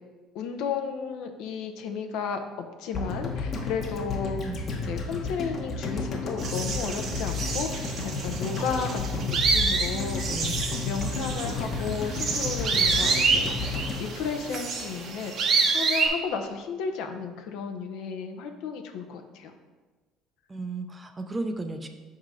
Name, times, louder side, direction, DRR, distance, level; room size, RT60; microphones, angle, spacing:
voice 1, 0.3-10.5 10.8-19.5, left 6 dB, 75° left, 5 dB, 0.6 m, -34 dB
sound 1, 2.9-15.1 15.4-15.5, left 3 dB, 40° left, 0.9 m, -32 dB
sound 2, 6.4-16.1, right 4 dB, 50° right, 0.8 m, -28 dB
voice 2, 20.5-21.9, right 2 dB, 15° right, 7 dB, 0.5 m, -34 dB
5.4 x 3.8 x 4.9 m, 1.3 s
cardioid pair, 115°, 0 cm